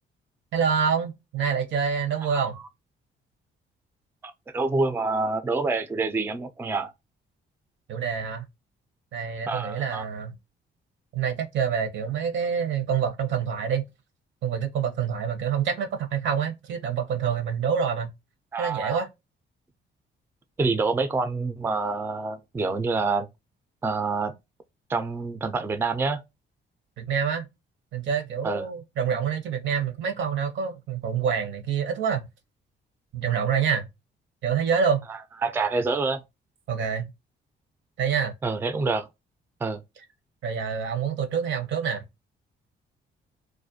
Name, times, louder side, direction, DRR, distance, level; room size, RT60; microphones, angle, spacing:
voice 1, 0.5-2.6 7.9-8.5 9.1-10.4 11.1-13.8 14.4-18.1 18.6-19.1 27.0-27.5 27.9-32.2 33.1-33.9 34.4-35.0 36.7-37.1 38.0-38.3 40.4-42.1, right 7 dB, 70° right, 0.7 m, -26 dB
voice 2, 4.2-6.9 9.5-10.1 18.5-19.0 20.6-23.3 23.8-24.3 24.9-26.2 28.4-28.7 35.1-36.2 38.4-39.1 39.6-39.8, right 3 dB, 10° right, 0.3 m, -27 dB
2.4 x 2.1 x 2.6 m
cardioid pair, 90°, 20 cm